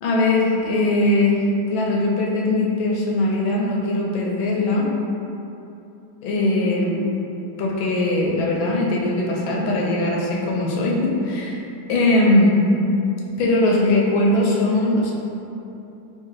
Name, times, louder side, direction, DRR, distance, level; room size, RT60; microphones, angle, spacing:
voice 1, 0.0-4.9 6.2-7.0 7.6-11.6 11.9-12.6 13.4-15.1, left 2 dB, 85° left, -2 dB, 1.4 m, -20 dB
4.7 x 2.6 x 3.0 m, 2.9 s
omnidirectional pair, 2.2 m